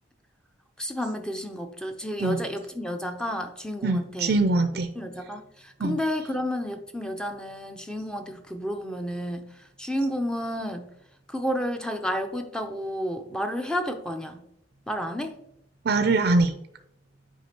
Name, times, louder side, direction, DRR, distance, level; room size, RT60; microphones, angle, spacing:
voice 1, 0.8-4.4 5.0-10.9 11.3-14.4 14.9-15.4, equal, 5° left, 6 dB, 0.5 m, -31 dB
voice 2, 3.8-4.9 5.8-6.0 15.8-16.5, right 3 dB, 55° right, 8 dB, 0.5 m, -23 dB
8.2 x 5.1 x 2.9 m, 0.78 s
head